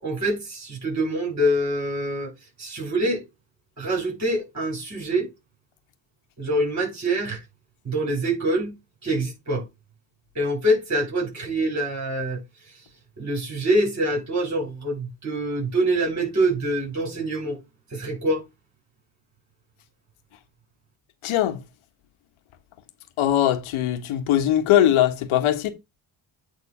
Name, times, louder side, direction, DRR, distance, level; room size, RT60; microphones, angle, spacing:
voice 1, 0.0-2.3 2.6-3.2 3.8-5.3 6.4-7.4 7.8-8.7 9.0-9.6 10.3-12.4 13.2-17.6 17.9-18.4, right 1 dB, 35° right, 5.7 m, -25 dB
voice 2, 21.2-21.6 23.2-25.7, left 11 dB, 80° left, 1.6 m, -20 dB
9.2 x 3.8 x 5.0 m
cardioid pair, 80°, 48 cm